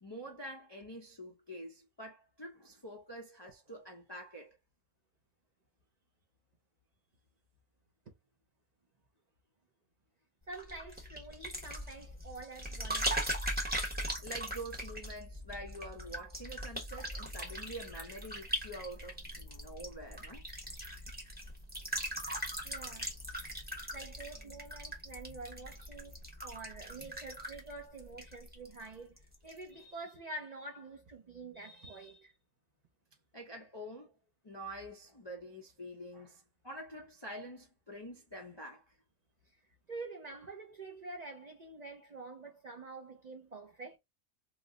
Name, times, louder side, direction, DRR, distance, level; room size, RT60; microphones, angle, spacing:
voice 1, 0.0-4.6 14.2-20.4 33.3-34.1 34.4-39.0, right 1 dB, 35° left, 0.4 m, -46 dB
sound 1, 10.5-28.9 29.2-29.6, right 1 dB, 10° right, 0.8 m, -40 dB
voice 2, 10.5-13.2 22.6-23.1 23.9-32.3 39.9-44.0, right 3 dB, 75° right, 0.3 m, -47 dB
3.1 x 2.0 x 3.6 m
omnidirectional pair, 1.6 m